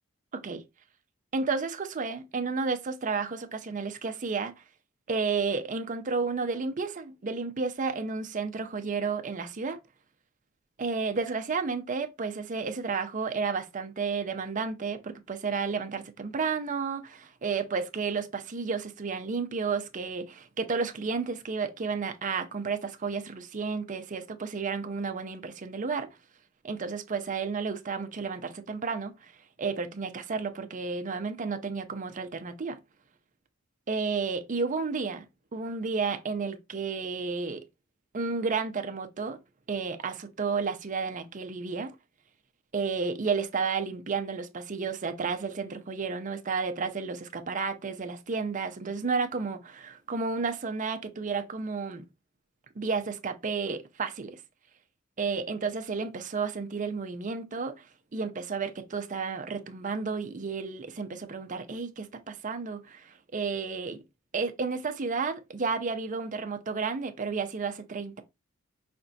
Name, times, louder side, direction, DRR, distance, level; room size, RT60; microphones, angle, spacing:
voice 1, 1.3-4.5 5.1-9.8 10.8-26.1 26.6-29.3 29.6-32.8 33.9-35.2 35.5-37.6 38.1-39.4 39.7-41.9 42.7-52.1 52.8-54.4 55.2-57.9 58.1-64.0 64.3-68.2, right 4 dB, 40° right, 0.6 m, -32 dB
5.0 x 3.3 x 2.7 m
head